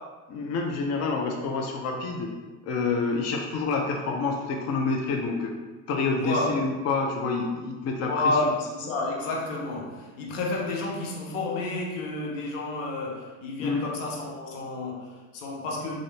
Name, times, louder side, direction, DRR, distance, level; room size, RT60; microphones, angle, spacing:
voice 1, 0.3-2.3 2.6-5.5 5.9-8.3 13.6-13.8, left 4 dB, 45° left, 2 dB, 0.6 m, -28 dB
voice 2, 6.2-6.6 8.1-15.9, left 2 dB, 85° left, -1 dB, 0.9 m, -30 dB
3.8 x 2.6 x 3.3 m, 1.2 s
hypercardioid pair, 85°, 37 cm